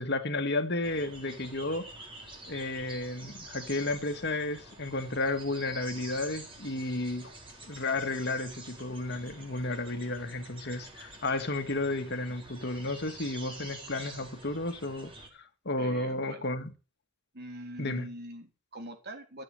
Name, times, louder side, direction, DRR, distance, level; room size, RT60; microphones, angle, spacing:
voice 1, 0.0-1.9 2.5-7.4 7.6-16.7 17.8-18.1, left 2 dB, 50° left, 1.9 m, -32 dB
sound 1, 0.8-15.3, right 2 dB, 25° right, 4.2 m, -48 dB
voice 2, 15.8-16.4 17.3-19.4, right 1 dB, 50° right, 3.7 m, -43 dB
15.0 x 8.2 x 7.8 m
head